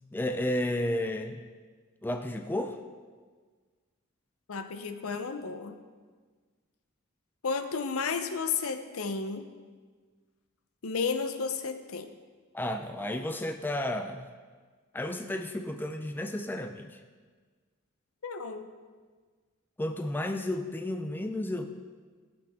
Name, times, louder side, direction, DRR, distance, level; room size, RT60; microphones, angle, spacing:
voice 1, 0.1-1.4 2.0-2.8 12.5-14.3 14.9-17.0 19.8-21.7, left 1 dB, 10° left, 6 dB, 0.4 m, -32 dB
voice 2, 4.5-5.7 7.4-9.5 10.8-12.1 18.2-18.7, left 5 dB, 80° left, 8 dB, 0.7 m, -32 dB
15.5 x 5.9 x 3.6 m, 1.5 s
head